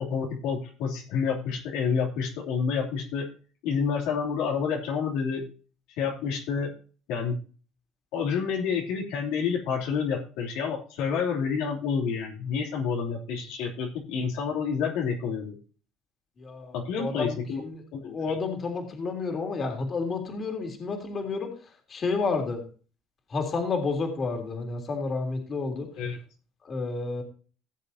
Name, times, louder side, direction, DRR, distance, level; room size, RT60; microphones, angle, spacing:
voice 1, 0.0-3.3 3.6-5.5 6.0-6.7 7.1-7.4 8.1-15.6 16.7-17.6 17.9-18.3 26.0-26.2, left 6 dB, 75° left, -1 dB, 3.1 m, -29 dB
voice 2, 16.4-17.8 18.1-21.5 21.9-22.6 23.3-25.9 26.7-27.2, left 4 dB, 35° left, 3 dB, 3.2 m, -30 dB
16.5 x 7.2 x 2.8 m, 0.38 s
supercardioid pair, 105°, 0 cm